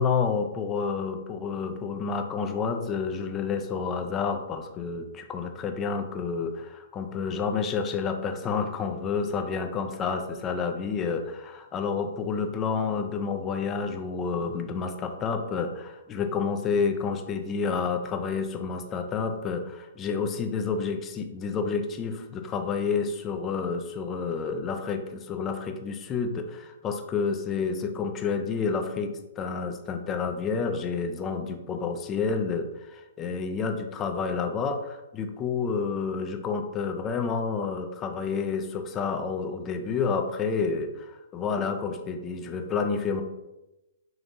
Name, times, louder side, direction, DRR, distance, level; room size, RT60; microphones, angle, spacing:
voice 1, 0.0-43.2, left 5 dB, 20° left, 5 dB, 0.5 m, -29 dB
5.1 x 2.9 x 2.6 m, 0.99 s
hypercardioid pair, 130°, 0 cm